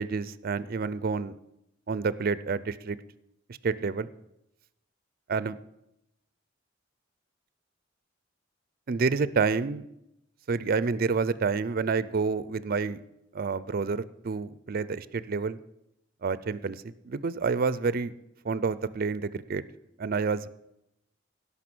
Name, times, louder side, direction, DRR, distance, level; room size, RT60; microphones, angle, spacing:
voice 1, 0.0-1.4 1.9-3.0 3.5-4.1 5.3-5.6 8.9-9.8 10.5-13.0 13.3-15.6 16.2-18.1 18.4-19.6 20.0-20.5, right 4 dB, 50° right, 17 dB, 0.5 m, -28 dB
17.0 x 5.7 x 6.1 m, 0.85 s
head